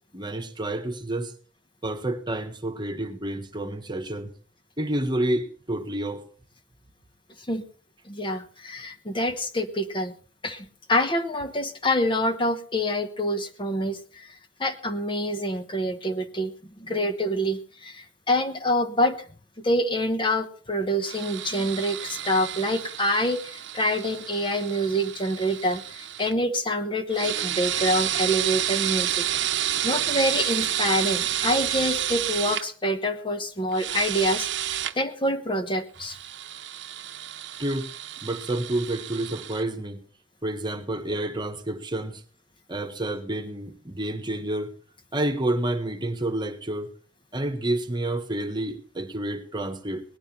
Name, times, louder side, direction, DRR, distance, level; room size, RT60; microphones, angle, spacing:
voice 1, 0.1-1.3 1.8-4.3 4.8-6.2 37.6-37.9 38.2-40.0 40.4-42.2 42.7-44.7 45.1-46.9 47.3-50.0, right 1 dB, 25° right, 1.3 m, -29 dB
voice 2, 8.1-10.1 10.4-16.5 16.8-19.2 19.6-29.3 29.8-36.2, equal, 25° left, 1.1 m, -26 dB
sound 1, 21.1-26.3 27.1-32.6 33.7-34.9 36.0-39.6, right 11 dB, 65° right, 0.9 m, -30 dB
18.5 x 11.5 x 4.3 m
head